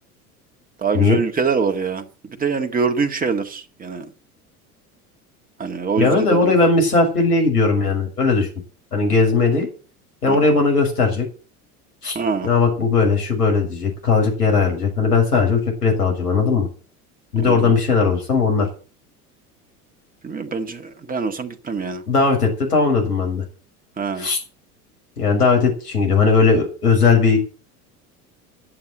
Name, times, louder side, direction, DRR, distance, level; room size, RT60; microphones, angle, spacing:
voice 1, 0.8-4.1 5.6-6.5 10.3-10.6 12.1-12.5 17.4-17.7 20.2-22.0 24.0-24.3, right 5 dB, 20° right, 7 dB, 1.8 m, -24 dB
voice 2, 6.0-8.5 8.9-9.7 10.2-11.2 12.0-12.2 12.4-16.7 17.3-18.7 22.1-23.4 24.2-24.4 25.2-27.4, left 4 dB, 80° left, 1 dB, 6.5 m, -18 dB
11.5 x 7.7 x 9.2 m, 0.37 s
figure-of-eight pair, 75°, 46 cm